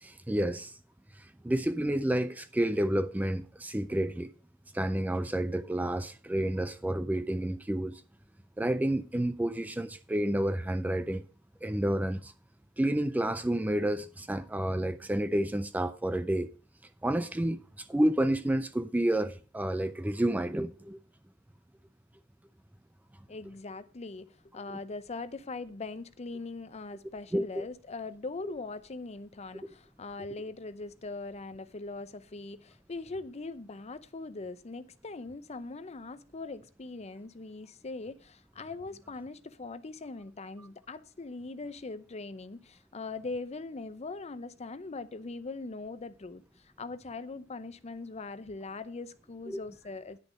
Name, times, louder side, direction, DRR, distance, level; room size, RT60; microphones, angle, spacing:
voice 1, 0.0-0.8 1.2-4.3 4.7-8.0 8.6-11.2 11.6-12.3 12.8-16.5 17.0-21.0 24.7-24.8 27.3-27.6 49.5-49.6, right 1 dB, 10° right, 0.3 m, -30 dB
voice 2, 23.3-50.2, left 3 dB, 35° left, 0.6 m, -41 dB
10.5 x 6.6 x 5.1 m
head